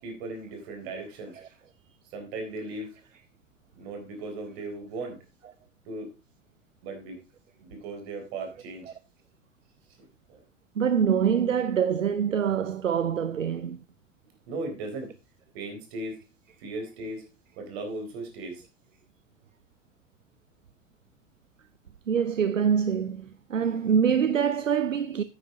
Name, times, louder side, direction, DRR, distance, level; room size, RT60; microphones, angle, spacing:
voice 1, 0.0-1.3 2.1-2.9 3.8-5.2 5.9-6.1 6.8-7.2 7.6-8.9 10.0-10.4 14.5-15.1 15.5-16.2 16.6-17.2 17.6-18.6, right 2 dB, 55° right, 4.1 m, -37 dB
voice 2, 10.8-13.8 22.1-25.2, right 7 dB, 85° right, 0.6 m, -25 dB
9.6 x 9.3 x 3.9 m
figure-of-eight pair, 80°, 37 cm